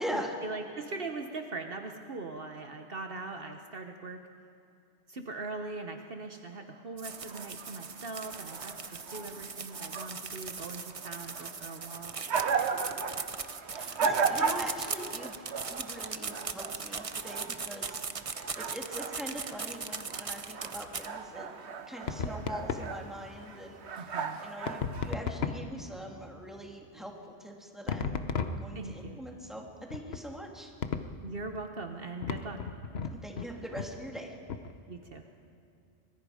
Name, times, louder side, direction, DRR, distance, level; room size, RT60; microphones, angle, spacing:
voice 1, 0.4-4.2 5.1-12.1 24.0-24.4 28.7-29.2 31.2-32.6 34.9-35.2, right 3 dB, 60° right, 5 dB, 1.3 m, -41 dB
sound 1, 7.0-21.1, right 5 dB, 35° right, 0.7 m, -39 dB
sound 2, 7.1-25.1, right 5 dB, 85° right, 1.4 m, -37 dB
voice 2, 13.7-15.4 15.7-21.5 21.9-23.8 24.1-28.2 28.6-29.6 29.9-30.7 33.0-34.4, equal, ahead, 0 dB, 2.6 m, -42 dB
sound 3, 22.0-22.9 24.7-25.8 27.9-28.9 29.9-30.2 30.8-31.2 32.2-33.5 33.8-33.9 34.5-34.7, left 5 dB, 70° left, 1.1 m, -34 dB
25.0 x 22.0 x 5.0 m, 2.5 s
omnidirectional pair, 1.1 m